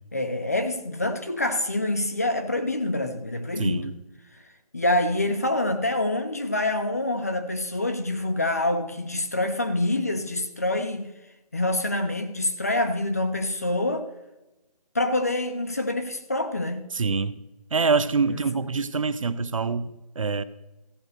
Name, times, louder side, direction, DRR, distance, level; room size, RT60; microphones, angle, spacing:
voice 1, 0.1-3.9 4.7-11.1 11.5-14.1 14.9-16.9 18.3-18.4, left 1 dB, 25° left, 7 dB, 0.5 m, -26 dB
voice 2, 3.6-3.9 16.9-17.4 17.7-20.4, right 4 dB, 60° right, 14 dB, 0.6 m, -25 dB
14.5 x 5.2 x 6.6 m, 0.99 s
hypercardioid pair, 175°, 19 cm